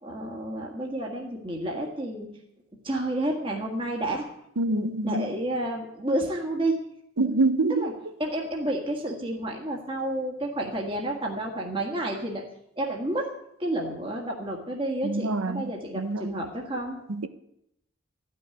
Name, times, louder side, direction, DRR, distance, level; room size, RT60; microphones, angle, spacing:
voice 1, 0.0-2.3 2.8-4.3 4.7-6.8 7.2-7.4 7.8-7.9 8.2-12.4 12.8-13.3 13.6-17.1, right 1 dB, 25° right, 1.7 m, -30 dB
voice 2, 4.6-5.3 7.2-7.9 15.0-16.4 17.1-17.3, right 2 dB, 85° right, 0.8 m, -26 dB
14.5 x 6.3 x 9.8 m
head